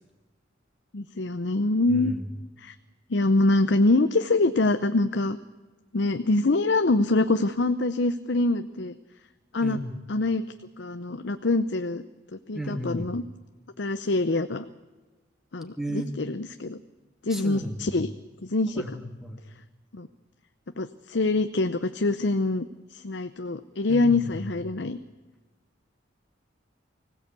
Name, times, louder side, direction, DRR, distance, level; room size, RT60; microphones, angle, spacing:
voice 1, 0.9-2.1 2.6-2.7 3.1-5.4 5.9-9.0 9.5-9.8 10.1-10.4 10.8-12.0 12.3-13.2 13.8-14.7 15.5-16.8 17.2-18.1 18.4-18.8 19.9-20.1 20.8-25.0, left 2 dB, 65° left, 10 dB, 0.7 m, -25 dB
voice 2, 1.9-2.2 9.6-10.0 12.5-13.1 15.8-16.1 17.3-18.0 18.8-19.4 23.9-24.5, equal, ahead, 4 dB, 2.3 m, -34 dB
24.5 x 16.5 x 8.3 m, 1.2 s
head